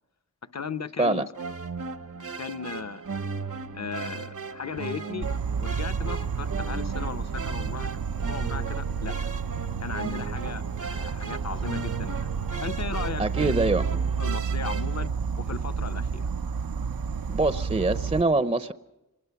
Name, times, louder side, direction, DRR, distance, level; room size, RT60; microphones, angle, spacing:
voice 1, 0.5-1.3 2.0-3.0 3.7-5.3 5.6-8.0 8.3-9.3 9.8-10.6 10.9-13.5 14.2-16.2, left 5 dB, 50° left, 0.9 m, -36 dB
sound 1, 1.3-15.1, right 4 dB, 60° right, 1.0 m, -37 dB
Insect, 5.2-18.2, right 6 dB, 85° right, 0.7 m, -30 dB
voice 2, 13.2-13.9 17.3-18.7, right 2 dB, 20° right, 0.7 m, -24 dB
26.0 x 20.0 x 5.9 m
wide cardioid pair, 55°, 34 cm